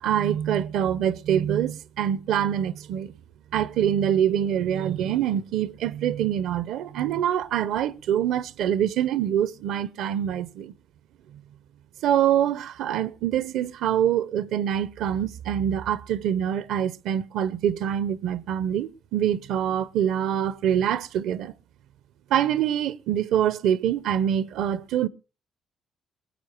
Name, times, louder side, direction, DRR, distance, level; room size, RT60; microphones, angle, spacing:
voice 1, 0.0-3.1 3.5-10.7 12.0-21.5 22.3-25.1, right 10 dB, 85° right, 0.7 m, -25 dB
21.5 x 8.4 x 4.5 m
cardioid pair, 90°, 0 cm